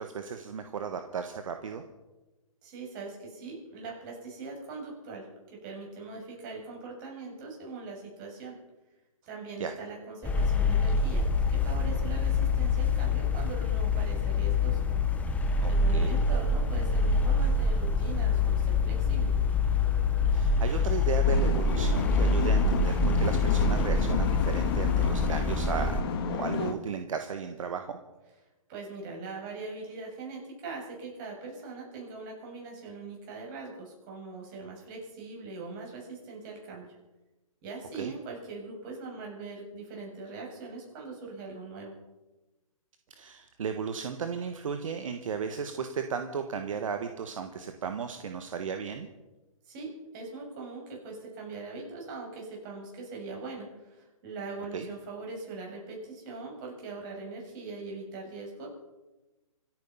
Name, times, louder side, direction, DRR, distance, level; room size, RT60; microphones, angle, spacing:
voice 1, 0.0-1.8 9.6-9.7 15.6-16.2 20.3-28.0 37.9-38.1 43.1-49.1 54.7-54.9, right 6 dB, 65° right, 7 dB, 1.5 m, -35 dB
voice 2, 2.6-8.6 9.2-14.8 15.7-19.3 28.7-36.9 37.6-41.9 49.7-58.7, right 3 dB, 35° right, 0 dB, 7.2 m, -41 dB
sound 1, 10.2-26.0, left 3 dB, 10° left, 1.2 m, -26 dB
sound 2, 21.2-26.7, left 6 dB, 40° left, 1.9 m, -32 dB
26.0 x 9.4 x 5.6 m, 1.1 s
hypercardioid pair, 140°, 18 cm